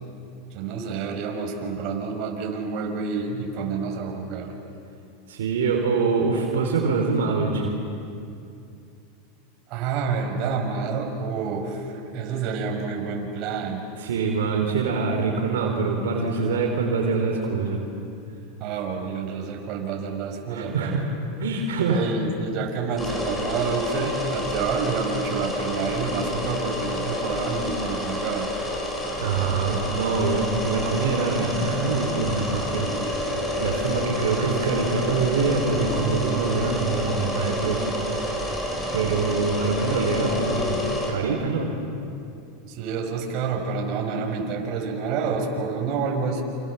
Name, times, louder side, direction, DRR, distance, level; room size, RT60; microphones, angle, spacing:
voice 1, 0.5-4.5 9.7-13.9 18.6-21.0 21.9-28.5 42.7-46.4, right 5 dB, 50° right, 2 dB, 5.6 m, -28 dB
voice 2, 5.3-7.7 14.0-17.8 20.5-21.1 21.4-22.2 29.2-32.9 33.6-38.3 38.9-40.8 41.1-41.7, right 4 dB, 85° right, 1 dB, 3.7 m, -24 dB
sound 1, 23.0-41.1, left 1 dB, 15° left, 7.6 m, -29 dB
29.0 x 27.5 x 7.1 m, 2.6 s
hypercardioid pair, 110°, 0 cm